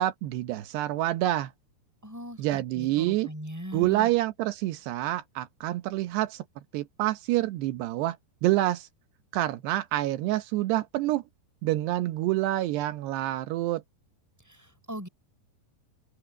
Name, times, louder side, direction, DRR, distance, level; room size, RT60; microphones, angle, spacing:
voice 1, 0.0-1.5 2.4-3.3 3.7-6.4 6.7-8.2 8.4-8.9 9.3-11.2 11.6-13.8, right 15 dB, 85° right, 3.0 m, -27 dB
voice 2, 2.0-4.1 14.5-15.1, equal, 5° right, 5.8 m, -40 dB
open air
omnidirectional pair, 4.8 m